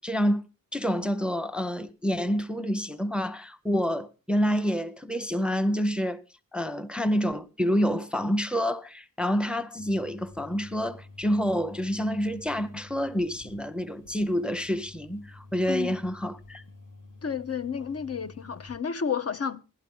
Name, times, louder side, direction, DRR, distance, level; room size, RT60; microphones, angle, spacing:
voice 1, 0.0-0.5 0.7-6.2 6.5-16.6, equal, 5° right, 0.6 m, -28 dB
sound 1, 9.8-18.8, left 2 dB, 65° left, 1.9 m, -49 dB
voice 2, 17.2-19.6, left 6 dB, 45° left, 0.6 m, -31 dB
16.5 x 12.0 x 3.6 m
wide cardioid pair, 110°, 34 cm